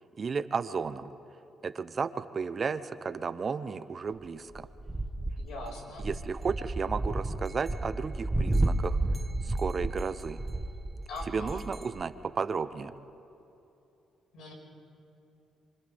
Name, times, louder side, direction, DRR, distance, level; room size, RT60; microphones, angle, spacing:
voice 1, 0.2-1.1 1.6-4.7 6.0-9.0 9.4-10.4 11.3-12.9, right 5 dB, 40° right, 11 dB, 0.8 m, -33 dB
sound 1, 4.5-12.0, right 2 dB, 15° right, 1.0 m, -32 dB
voice 2, 5.4-6.1 11.1-11.6 14.3-14.5, left 2 dB, 80° left, -1 dB, 5.6 m, -41 dB
29.0 x 25.0 x 3.6 m, 3.0 s
cardioid pair, 90°, 0 cm